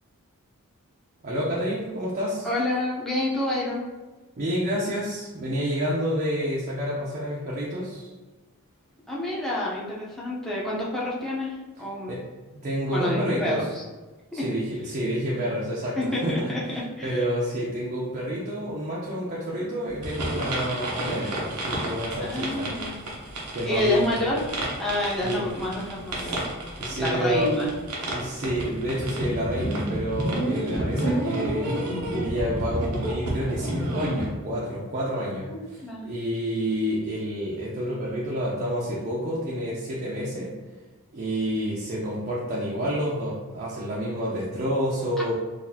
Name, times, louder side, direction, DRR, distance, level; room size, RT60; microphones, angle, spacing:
voice 1, 1.2-2.5 4.4-8.1 12.1-12.2 12.6-13.6 14.3-16.5 17.0-22.7 23.5-24.2 25.2-25.5 26.2-26.3 26.8-27.5 28.1-31.8 32.2-40.5 41.1-45.3, equal, 40° right, -6 dB, 0.6 m, -29 dB
voice 2, 2.4-3.9 9.1-12.1 12.9-13.8 14.3-14.4 16.0-17.3 22.2-23.0 23.6-24.4 24.8-26.5 26.9-27.7 30.6-30.7 35.5-36.1, left 1 dB, ahead, -6 dB, 0.7 m, -28 dB
sound 1, 20.0-34.3, right 1 dB, 80° right, 0.9 m, -30 dB
4.0 x 2.6 x 2.7 m, 1.3 s
head